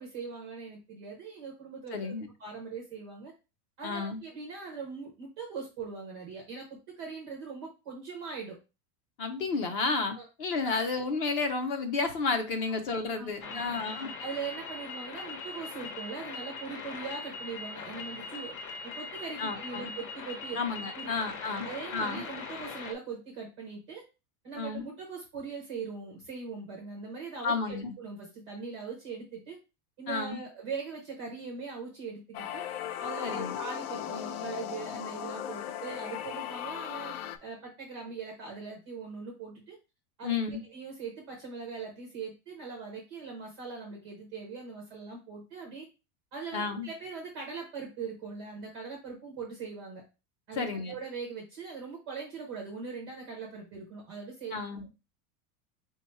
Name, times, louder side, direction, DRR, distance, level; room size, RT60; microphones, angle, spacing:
voice 1, 0.0-2.1 2.4-3.3 3.8-6.7 7.0-8.6 9.8-10.2 10.6-11.0 12.7-18.6 18.8-20.6 20.9-21.1 21.6-24.0 24.4-29.6 30.0-32.6 33.0-39.7 40.2-45.9 46.3-50.0 50.5-54.6, right 5 dB, 20° right, -1 dB, 0.4 m, -41 dB
voice 2, 1.9-2.3 3.8-4.2 9.2-14.1 19.4-19.9 20.6-22.2 24.6-24.9 27.4-27.9 30.1-30.4 33.2-33.6 40.2-40.6 46.5-46.9 50.6-50.9 54.5-54.9, left 4 dB, 40° left, 7 dB, 0.6 m, -32 dB
sound 1, 13.4-22.9, left 4 dB, 70° left, 1.0 m, -41 dB
sound 2, 32.3-37.4, left 11 dB, 85° left, 0.6 m, -37 dB
4.5 x 2.2 x 4.1 m, 0.30 s
supercardioid pair, 180°, 44 cm